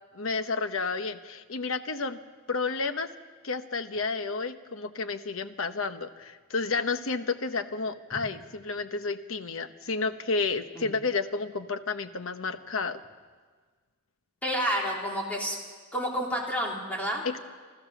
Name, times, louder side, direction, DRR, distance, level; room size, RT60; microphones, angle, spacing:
voice 1, 0.1-2.2 2.5-3.1 3.4-13.0 17.2-17.4, left 4 dB, 80° left, 10 dB, 1.0 m, -31 dB
voice 2, 14.4-15.6 15.9-17.2, equal, 10° left, -2 dB, 3.4 m, -30 dB
28.0 x 13.5 x 7.1 m, 1.5 s
head